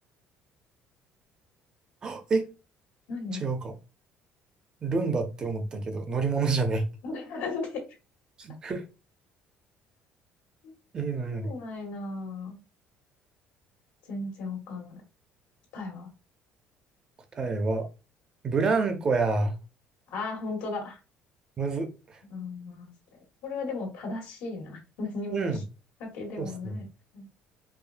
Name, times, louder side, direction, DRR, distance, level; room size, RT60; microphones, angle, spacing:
voice 1, 2.0-2.5 3.4-3.7 4.8-6.9 8.4-8.8 10.9-11.5 17.3-17.9 18.4-19.6 21.6-22.2 25.3-25.6 26.4-26.8, right 4 dB, 25° right, 0.5 m, -28 dB
voice 2, 3.1-3.5 7.0-7.8 11.2-12.6 14.1-15.0 15.7-16.1 20.1-21.0 22.3-22.9 23.4-25.6 26.0-26.9 27.1-27.3, left 3 dB, 85° left, 1.8 m, -36 dB
4.9 x 2.3 x 2.5 m
cardioid pair, 175°, 3 cm